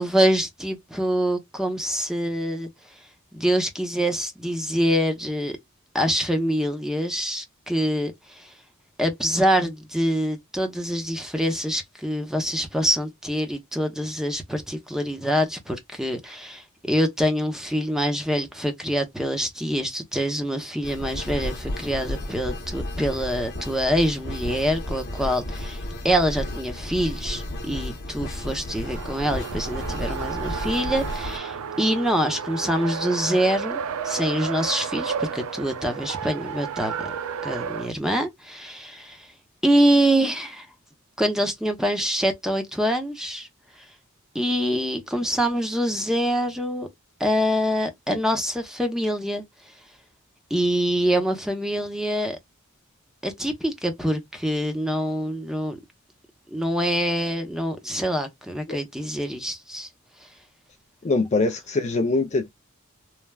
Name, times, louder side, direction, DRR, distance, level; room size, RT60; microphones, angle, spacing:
voice 1, 0.0-2.7 3.3-5.6 5.9-8.5 9.0-37.1 37.4-39.3 39.6-40.7 41.2-43.5 44.3-46.9 47.2-49.4 50.5-52.4 53.2-55.8 56.5-59.9, equal, ahead, 0.7 m, -25 dB
sound 1, 20.8-31.4, left 1 dB, 50° left, 0.9 m, -33 dB
Race car auto racing, 28.7-37.9, right 6 dB, 80° right, 0.4 m, -32 dB
voice 2, 61.0-62.5, left 3 dB, 35° left, 0.4 m, -23 dB
3.2 x 2.2 x 2.2 m
head